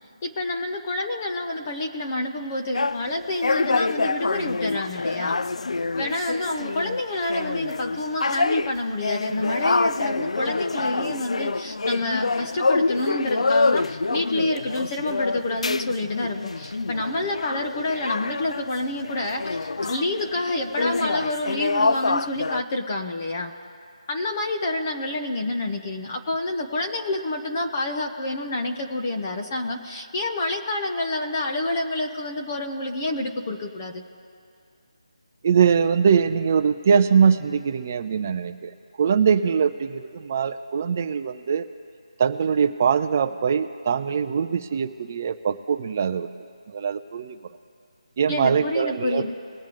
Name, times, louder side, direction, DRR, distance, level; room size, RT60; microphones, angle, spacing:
voice 1, 0.2-5.3 5.9-23.5 24.1-34.0 48.3-49.3, left 2 dB, 20° left, 2 dB, 0.6 m, -28 dB
sound 1, 2.7-18.8 19.0-22.6, left 3 dB, 75° left, 0.3 m, -26 dB
voice 2, 35.4-38.7 39.0-41.7 42.2-46.3 46.7-47.4 48.2-49.3, right 6 dB, 20° right, 9 dB, 0.4 m, -22 dB
21.0 x 7.3 x 3.8 m, 2.4 s
figure-of-eight pair, 175°, 3 cm